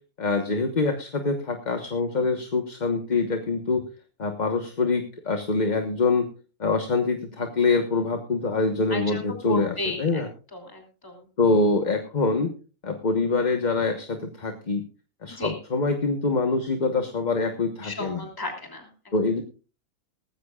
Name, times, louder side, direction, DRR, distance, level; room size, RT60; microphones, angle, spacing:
voice 1, 0.2-3.8 4.2-6.2 6.6-10.3 11.4-12.5 12.8-14.8 15.2-18.3 19.1-19.4, left 3 dB, 30° left, 5 dB, 1.2 m, -25 dB
voice 2, 8.9-10.2 10.5-11.2 15.4-15.5 17.8-19.1, left 2 dB, 15° left, 2 dB, 3.0 m, -33 dB
19.0 x 15.0 x 2.4 m, 0.35 s
omnidirectional pair, 1.6 m